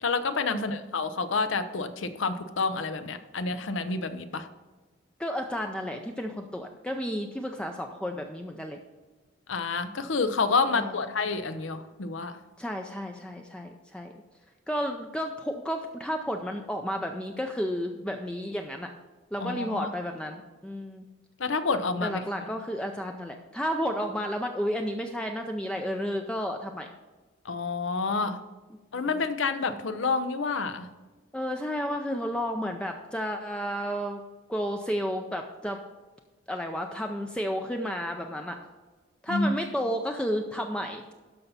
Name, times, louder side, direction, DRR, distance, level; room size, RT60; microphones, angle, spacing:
voice 1, 0.0-4.5 9.5-12.3 19.4-19.9 21.4-22.2 27.5-28.4 28.9-30.9 39.3-39.5, left 4 dB, 70° left, 10 dB, 0.7 m, -28 dB
voice 2, 5.2-8.8 10.7-11.0 12.6-14.1 14.7-18.9 19.3-21.0 22.0-26.9 28.9-29.1 31.3-34.2 34.5-35.8 36.5-38.6 39.2-41.1, equal, 5° left, 3 dB, 0.4 m, -32 dB
12.5 x 5.5 x 4.1 m, 1.3 s
head